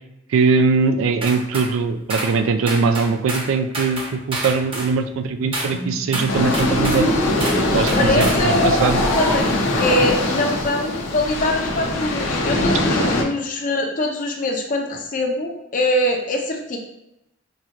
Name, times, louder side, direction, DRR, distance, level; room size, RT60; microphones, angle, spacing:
voice 1, 0.3-7.1 7.7-9.0 13.0-13.1, right 4 dB, 80° right, 9 dB, 0.3 m, -21 dB
sound 1, 1.2-1.7 2.1-2.3 2.7-3.5 3.7-4.9 5.5-5.7 6.1-7.0 7.4-7.6 7.9-8.4, right 1 dB, 25° right, 0.8 m, -28 dB
sound 2, 5.1-9.4, right 1 dB, 10° right, 0.4 m, -27 dB
sound 3, 6.3-13.2, left 2 dB, 90° left, 0.7 m, -21 dB
voice 2, 8.0-9.4 9.7-16.8, left 1 dB, 40° left, 2 dB, 0.6 m, -23 dB
4.7 x 2.4 x 2.9 m, 0.88 s
head